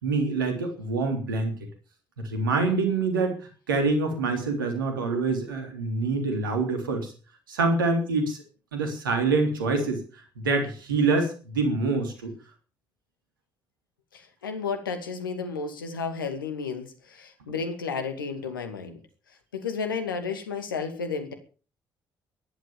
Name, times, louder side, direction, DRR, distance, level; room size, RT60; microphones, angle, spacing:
voice 1, 0.0-1.5 2.2-3.3 3.7-7.1 7.5-8.4 8.7-10.0 10.4-12.3, right 3 dB, 80° right, 5 dB, 3.4 m, -25 dB
voice 2, 14.1-19.0 19.5-21.3, left 5 dB, 80° left, 7 dB, 2.4 m, -32 dB
14.5 x 11.5 x 7.1 m, 0.38 s
figure-of-eight pair, 45°, 11 cm